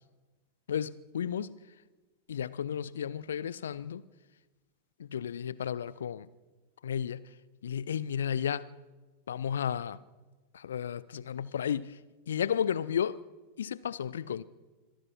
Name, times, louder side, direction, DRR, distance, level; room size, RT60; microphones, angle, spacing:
voice 1, 0.7-1.6 2.3-4.0 5.0-6.3 6.8-7.2 7.6-8.7 9.3-10.0 10.5-12.0 12.3-13.2 13.6-14.4, left 8 dB, 65° left, 0.8 m, -33 dB
26.0 x 17.0 x 6.2 m
figure-of-eight pair, 90°, 0 cm